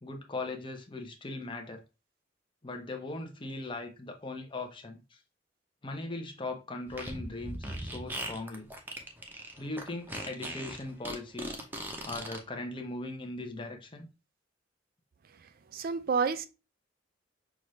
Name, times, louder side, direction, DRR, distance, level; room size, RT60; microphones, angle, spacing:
voice 1, 0.0-1.8 2.6-5.2 5.8-8.7 9.6-11.6 12.0-14.1, left 2 dB, 25° left, 0.8 m, -39 dB
Fart, 6.9-12.4, right 1 dB, 10° right, 0.7 m, -39 dB
voice 2, 15.7-16.5, right 5 dB, 50° right, 0.4 m, -29 dB
6.0 x 2.5 x 3.1 m
head